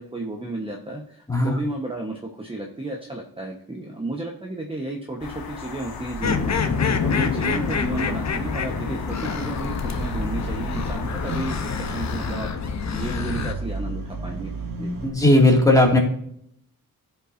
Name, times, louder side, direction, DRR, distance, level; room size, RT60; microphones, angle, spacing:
voice 1, 0.0-6.6 7.0-12.5 12.9-14.5 14.8-14.9, right 2 dB, 15° right, 0 dB, 1.1 m, -32 dB
voice 2, 1.3-1.6 6.7-6.9 15.0-16.0, left 1 dB, 10° left, -1 dB, 2.2 m, -17 dB
sound 1, 5.2-12.4, left 5 dB, 90° left, 1.5 m, -38 dB
sound 2, 6.1-15.1, right 3 dB, 70° right, 1.8 m, -35 dB
sound 3, 6.2-13.5, left 6 dB, 50° left, 0.9 m, -27 dB
16.0 x 5.7 x 2.6 m, 0.69 s
wide cardioid pair, 135°, 35 cm